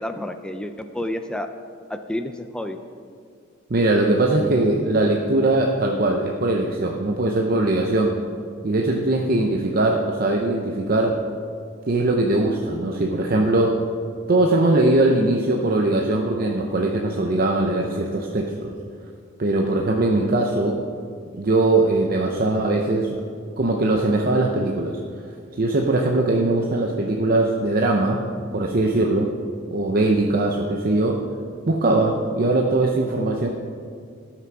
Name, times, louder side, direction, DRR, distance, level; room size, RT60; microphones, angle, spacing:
voice 1, 0.0-1.5 1.9-2.8, left 1 dB, 5° left, 7 dB, 0.3 m, -30 dB
voice 2, 3.7-8.1 8.6-11.2 11.9-13.8 14.3-18.7 19.4-20.8 21.3-23.2 23.6-25.0 25.5-28.2 28.5-29.3 29.7-31.2 31.7-33.5, right 2 dB, 45° right, 1 dB, 0.7 m, -21 dB
13.0 x 6.0 x 5.9 m, 2.2 s
head